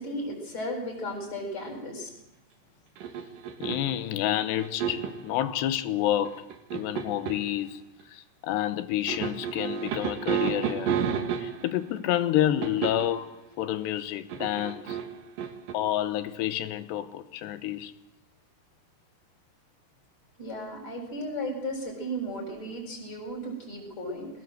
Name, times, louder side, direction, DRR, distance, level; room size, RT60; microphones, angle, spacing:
voice 1, 0.0-2.1 20.4-24.3, equal, 20° left, 8.2 m, -35 dB
sound 1, 3.0-4.0 4.6-5.2 6.2-7.5 9.1-11.8 12.6-13.2 14.3-15.7, right 7 dB, 60° right, 3.1 m, -31 dB
voice 2, 3.6-6.5 6.7-7.8 8.1-11.0 11.4-15.0 15.7-17.9, left 12 dB, 80° left, 3.2 m, -29 dB
23.0 x 19.0 x 8.0 m
omnidirectional pair, 5.0 m